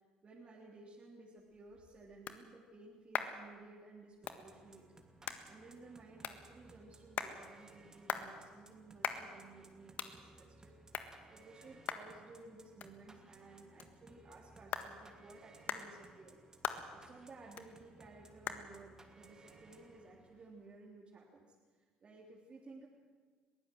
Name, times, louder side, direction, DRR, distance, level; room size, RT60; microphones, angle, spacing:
voice 1, 0.2-4.9 5.5-16.4 16.9-22.9, right 3 dB, 40° right, -3 dB, 3.2 m, -56 dB
sound 1, 1.4-20.7, left 8 dB, 65° left, 1.6 m, -46 dB
sound 2, 4.2-20.5, right 3 dB, 20° right, 2.7 m, -61 dB
22.0 x 15.5 x 7.8 m, 1.5 s
supercardioid pair, 80°, 3 cm